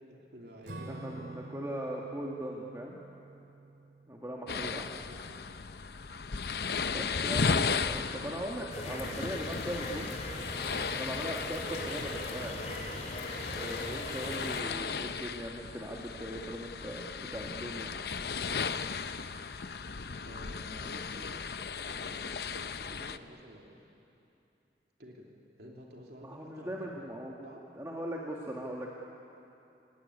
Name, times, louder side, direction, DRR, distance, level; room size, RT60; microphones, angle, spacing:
voice 1, 0.0-1.4 4.5-5.2 20.2-21.4 21.7-23.8 25.0-25.3 25.6-27.7, equal, 65° right, -1 dB, 3.0 m, -51 dB
Acoustic guitar / Strum, 0.6-5.4, right 2 dB, 80° right, 2.6 m, -48 dB
voice 2, 0.9-3.0 4.1-4.9 6.8-10.2 10.9-12.6 13.5-17.9 26.2-28.9, right 1 dB, 15° right, -3 dB, 1.8 m, -39 dB
sound 1, 4.5-23.2, left 5 dB, 65° left, 0.7 m, -36 dB
sound 2, 8.7-14.6, left 1 dB, 40° left, 3.2 m, -39 dB
27.5 x 18.0 x 9.8 m, 2.8 s
head